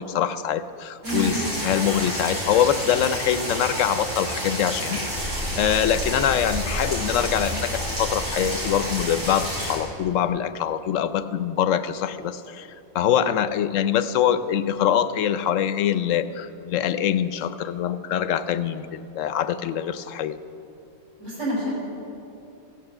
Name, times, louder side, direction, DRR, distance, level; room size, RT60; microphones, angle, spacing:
voice 1, 0.0-12.7 12.9-20.4, left 9 dB, 70° left, 12 dB, 1.0 m, -24 dB
voice 2, 1.0-1.4 21.2-21.7, equal, 60° right, -8 dB, 4.6 m, -27 dB
sound 1, 1.0-9.8, equal, 90° right, 5.1 m, -30 dB
Thunderstorm, 5.1-12.6, equal, 40° right, 3.9 m, -36 dB
15.0 x 9.5 x 7.8 m, 3.0 s
omnidirectional pair, 1.4 m